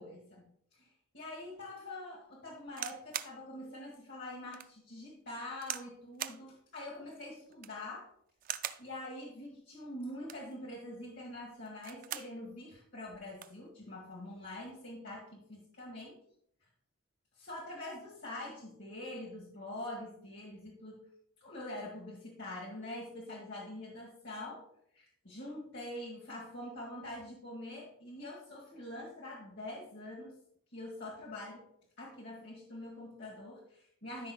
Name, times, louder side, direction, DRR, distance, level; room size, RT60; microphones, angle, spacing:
voice 1, 0.0-8.1 8.8-16.2 17.3-21.1 21.4-24.6 24.9-30.3 30.7-31.7 32.0-34.3, left 1 dB, 50° left, -3 dB, 1.6 m, -45 dB
sound 1, 2.7-3.4 3.9-4.0 4.5-4.7 5.6-5.9 6.2-6.4 7.5-7.9 8.4-8.9 10.1-10.5 11.7-12.4 12.8-12.9 13.1-13.6 14.4-14.7, right 11 dB, 40° right, 0.4 m, -41 dB
13.5 x 5.8 x 2.3 m, 0.69 s
head